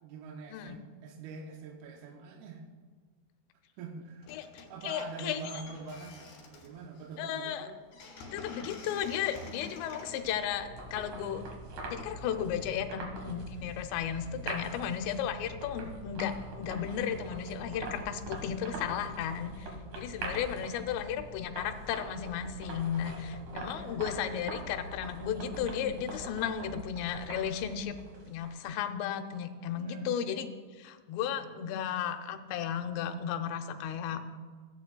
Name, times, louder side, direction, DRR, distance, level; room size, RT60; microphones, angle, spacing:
voice 1, 0.0-2.6 3.8-4.3 4.7-7.8 12.6-12.7 14.3-14.5 20.2-20.7 23.7-24.1 29.7-30.1 31.3-31.6, right 4 dB, 80° right, 2 dB, 2.3 m, -45 dB
sound 1, 4.2-4.7 5.0-11.2, left 4 dB, 70° left, 4.3 m, -49 dB
voice 2, 4.3-5.4 7.2-7.7 8.3-11.4 11.9-28.0 28.3-30.5 30.8-34.2, left 8 dB, 90° left, 7 dB, 2.9 m, -34 dB
sound 2, 9.7-28.7, right 1 dB, 55° right, 2.3 m, -43 dB
17.0 x 9.0 x 2.2 m, 1.5 s
omnidirectional pair, 4.9 m